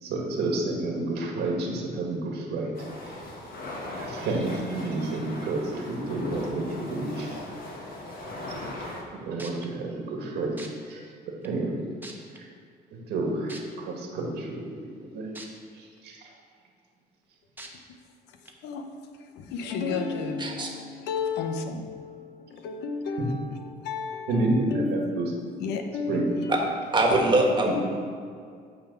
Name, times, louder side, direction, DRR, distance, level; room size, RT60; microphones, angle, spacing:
voice 1, 0.0-2.7 3.0-3.1 3.5-3.6 3.8-7.4 8.5-10.5 10.9-11.0 11.4-11.7 12.9-13.6 13.8-14.7 15.1-15.3 15.8-16.2 24.3-25.3 26.1-26.2, right 2 dB, 80° right, 0 dB, 1.8 m, -30 dB
sound 1, 2.7-9.0, left 1 dB, 60° left, 1.6 m, -38 dB
sound 2, 9.4-9.7 10.6-10.7 11.4-11.5 12.0-12.4 13.5-13.6 15.4-15.5 16.0-16.1 17.6-17.7 18.5-18.6, right 2 dB, 10° right, 1.1 m, -41 dB
voice 2, 19.3-25.2 25.6-26.6 27.3-27.6, left 4 dB, 85° left, 6 dB, 0.8 m, -32 dB
voice 3, 26.9-27.7, right 2 dB, 25° right, 1 dB, 1.5 m, -22 dB
9.2 x 4.0 x 6.9 m, 2.2 s
cardioid pair, 110°, 17 cm